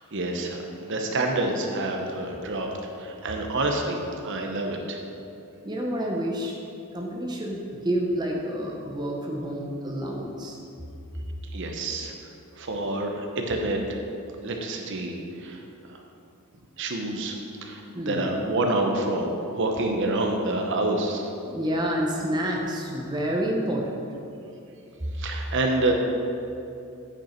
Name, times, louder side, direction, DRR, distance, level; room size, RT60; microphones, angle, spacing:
voice 1, 0.1-5.0 11.5-12.1 12.6-13.8 14.4-15.1 15.4-15.6 16.8-21.3 25.2-25.9, right 2 dB, 60° right, 2 dB, 0.8 m, -27 dB
voice 2, 5.6-6.6 6.9-10.6 17.9-18.3 21.5-24.0, equal, 20° right, -1 dB, 0.7 m, -29 dB
8.8 x 5.2 x 4.4 m, 2.7 s
head